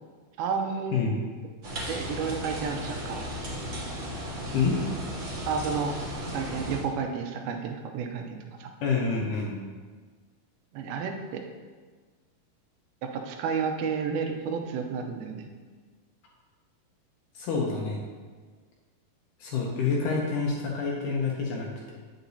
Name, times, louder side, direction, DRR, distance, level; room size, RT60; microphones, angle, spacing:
voice 1, 0.4-1.1 1.9-3.3 5.5-5.9 6.3-8.7 10.7-11.4 13.0-15.5, right 6 dB, 85° right, 4 dB, 2.5 m, -31 dB
sound 1, 1.6-6.8, equal, 50° right, 1.7 m, -35 dB
voice 2, 8.8-9.6 17.4-18.0 19.4-21.9, left 5 dB, 75° left, -2 dB, 2.0 m, -27 dB
8.9 x 6.5 x 2.7 m, 1.5 s
omnidirectional pair, 4.4 m